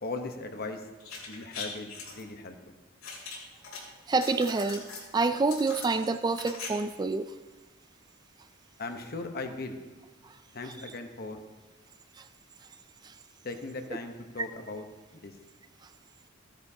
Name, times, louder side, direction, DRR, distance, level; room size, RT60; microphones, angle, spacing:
voice 1, 0.0-0.8 1.3-2.7 8.8-9.8 10.5-11.4 13.4-14.8 15.2-15.3, left 3 dB, 50° left, 6 dB, 1.0 m, -38 dB
sound 1, 1.0-2.2 3.0-3.8 4.1-5.1 5.5-6.7 6.9-7.0, left 5 dB, 85° left, 3.2 m, -41 dB
voice 2, 4.1-4.9 5.1-7.3 13.0-13.1, right 3 dB, 20° right, 10 dB, 0.3 m, -27 dB
15.0 x 10.5 x 2.8 m, 1.2 s
head